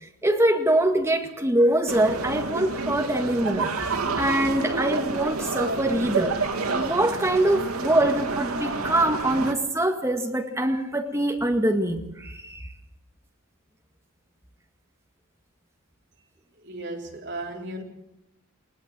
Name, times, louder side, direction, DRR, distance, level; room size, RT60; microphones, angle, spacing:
voice 1, 0.0-6.4 6.7-12.6, right 1 dB, 10° right, 4 dB, 1.9 m, -24 dB
sound 1, 1.9-9.5, right 3 dB, 90° right, 2.2 m, -29 dB
voice 2, 16.6-17.8, right 1 dB, 55° right, 1 dB, 3.5 m, -35 dB
20.5 x 18.0 x 7.7 m, 0.84 s
head